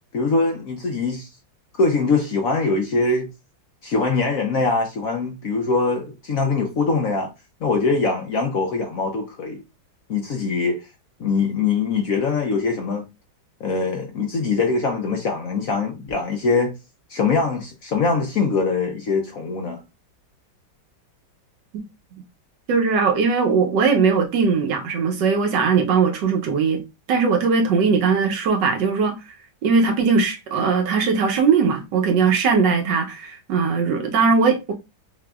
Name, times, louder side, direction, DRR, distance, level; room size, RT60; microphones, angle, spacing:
voice 1, 0.1-1.3 1.8-3.3 3.8-7.3 7.6-9.6 10.1-10.8 11.2-13.0 13.6-16.7 17.1-19.8, left 4 dB, 60° left, 0.9 m, -22 dB
voice 2, 22.7-26.8 27.1-29.1 29.6-34.7, right 5 dB, 70° right, 1.3 m, -19 dB
5.9 x 2.6 x 2.3 m
omnidirectional pair, 2.1 m